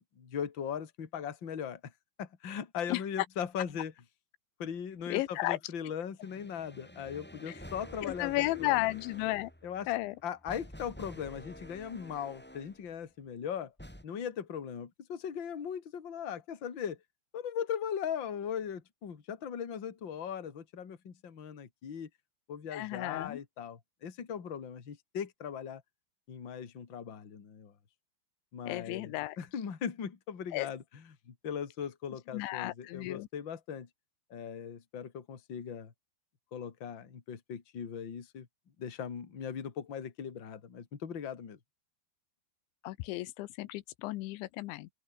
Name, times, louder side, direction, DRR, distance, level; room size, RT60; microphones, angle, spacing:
voice 1, 0.0-1.9 2.2-3.9 4.6-8.8 9.6-9.9 10.2-13.7 14.0-17.0 17.3-22.1 22.5-25.8 26.3-27.7 28.5-29.1 29.4-30.8 31.3-33.9 34.3-35.9 36.5-38.5 38.8-41.6, left 8 dB, 35° left, 2.4 m, -39 dB
voice 2, 5.1-5.6 7.5-7.6 8.0-9.5 9.9-10.2 22.7-23.4 28.7-29.4 30.5-30.7 32.3-33.3 42.8-44.9, left 18 dB, 85° left, 3.2 m, -33 dB
sound 1, 6.2-12.9 13.8-14.0, equal, ahead, 3.2 m, -50 dB
omnidirectional pair, 5.2 m